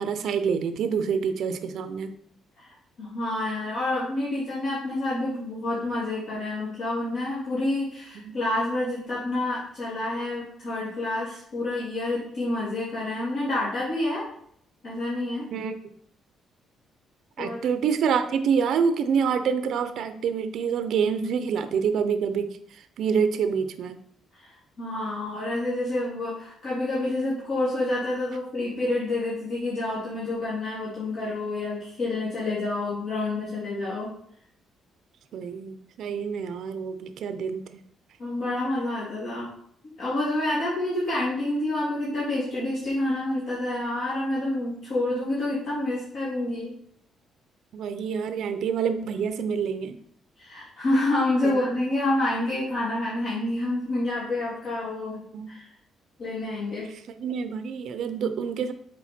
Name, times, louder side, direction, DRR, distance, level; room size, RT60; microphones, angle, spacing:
voice 1, 0.0-2.1 8.1-8.4 15.5-15.7 17.4-24.0 35.3-37.7 47.7-50.0 51.4-51.6 55.3-55.5 57.2-58.7, right 6 dB, 60° right, 9 dB, 0.6 m, -27 dB
voice 2, 3.0-14.3 14.8-15.5 17.4-17.6 24.4-34.1 38.2-39.5 40.0-46.8 50.4-55.2 55.5-55.7 56.2-56.9, left 2 dB, 55° left, -8 dB, 2.5 m, -28 dB
7.2 x 4.5 x 4.3 m, 0.65 s
cardioid pair, 150°, 0 cm